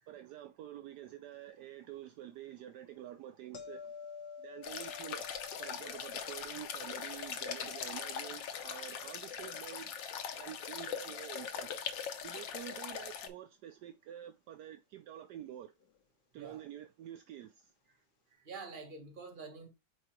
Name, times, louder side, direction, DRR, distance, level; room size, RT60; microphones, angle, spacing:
voice 1, 0.1-4.0 4.4-5.3 5.6-9.9 10.3-11.7 12.2-15.7 16.3-17.7, right 12 dB, 75° right, 1.1 m, -48 dB
sound 1, 3.5-10.5 15.8-16.0, left 6 dB, 65° left, 1.6 m, -52 dB
sound 2, 4.6-13.3, left 7 dB, 90° left, 1.5 m, -41 dB
voice 2, 18.3-19.7, right 4 dB, 30° right, 1.3 m, -47 dB
4.9 x 4.6 x 4.3 m
omnidirectional pair, 1.9 m